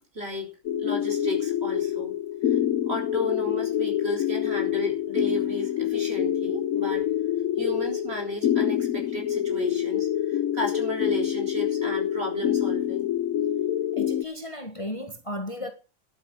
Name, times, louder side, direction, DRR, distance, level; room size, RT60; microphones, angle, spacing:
voice 1, 0.1-2.2 2.4-2.6 2.9-7.0 7.6-13.1, equal, 50° right, 4.4 m, -34 dB
sound 1, 0.7-14.2, left 10 dB, 85° left, 1.2 m, -26 dB
voice 2, 13.9-15.7, left 1 dB, 25° left, 1.5 m, -34 dB
11.5 x 9.2 x 6.3 m
omnidirectional pair, 1.4 m